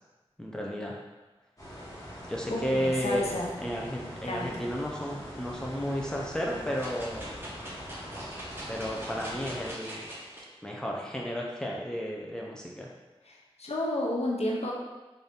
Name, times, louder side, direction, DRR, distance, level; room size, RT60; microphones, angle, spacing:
voice 1, 0.4-1.0 2.3-3.2 3.6-7.4 8.7-10.0 10.6-12.9, equal, 5° left, -2 dB, 0.6 m, -33 dB
sound 1, 1.6-9.7, equal, 30° left, 1.3 m, -43 dB
voice 2, 2.5-3.5 4.2-4.6 13.3-14.7, left 1 dB, 80° left, -3 dB, 0.7 m, -31 dB
sound 2, 6.8-10.4 11.0-11.1, right 1 dB, 20° right, 1.0 m, -43 dB
3.9 x 2.7 x 3.5 m, 1.2 s
wide cardioid pair, 50°, 11 cm